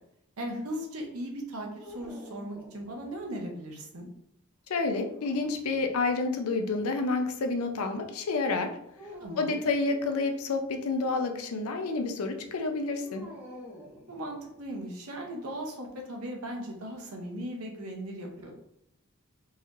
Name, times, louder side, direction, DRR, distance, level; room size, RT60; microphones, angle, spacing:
voice 1, 0.4-4.1 9.2-9.7 14.1-18.5, right 1 dB, 80° right, 1 dB, 0.8 m, -38 dB
sound 1, 1.8-3.3 5.0-6.1 9.0-9.8 13.0-14.7, left 1 dB, 5° right, 0.6 m, -47 dB
voice 2, 4.7-8.7 9.4-13.2, left 3 dB, 75° left, 6 dB, 0.5 m, -29 dB
4.0 x 2.9 x 2.5 m, 0.77 s
head